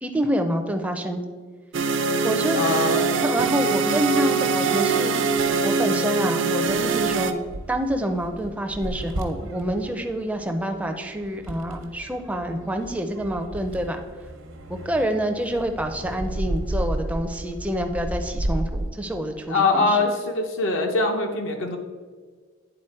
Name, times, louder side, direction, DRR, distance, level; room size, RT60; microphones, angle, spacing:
voice 1, 0.0-1.2 2.2-2.7 3.2-5.2 5.6-7.3 7.7-14.0 14.9-20.0, right 1 dB, 5° right, 4 dB, 0.4 m, -27 dB
sound 1, 1.7-7.3, right 4 dB, 60° right, 0.5 m, -23 dB
voice 2, 2.5-3.1 3.8-3.9 19.5-21.8, left 3 dB, 70° left, 3 dB, 0.8 m, -23 dB
sound 2, 6.7-18.9, right 1 dB, 80° right, 0.9 m, -33 dB
9.1 x 4.0 x 4.3 m, 1.5 s
head